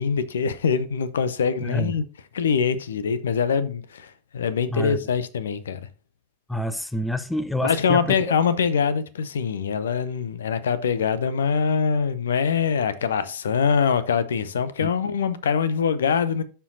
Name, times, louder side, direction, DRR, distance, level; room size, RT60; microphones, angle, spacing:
voice 1, 0.0-2.0 2.3-5.8 7.6-16.4, left 6 dB, 65° left, 0.7 m, -23 dB
voice 2, 1.6-2.0 4.7-5.0 6.5-8.1 14.8-14.9, left 1 dB, 5° left, 0.5 m, -27 dB
12.5 x 4.5 x 2.7 m
figure-of-eight pair, 90°, 0 cm